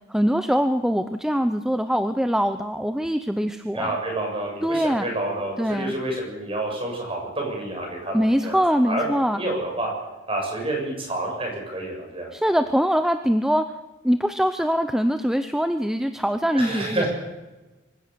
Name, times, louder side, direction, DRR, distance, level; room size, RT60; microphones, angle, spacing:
voice 1, 0.1-4.0 4.6-5.1 5.6-5.9 8.1-9.4 12.3-13.6 14.0-17.1, equal, 5° right, 8 dB, 0.6 m, -23 dB
voice 2, 3.7-8.2 8.4-8.6 8.9-9.9 10.3-12.3 16.5-17.1, right 1 dB, 30° right, 0 dB, 6.9 m, -28 dB
25.0 x 15.5 x 6.8 m, 1.2 s
head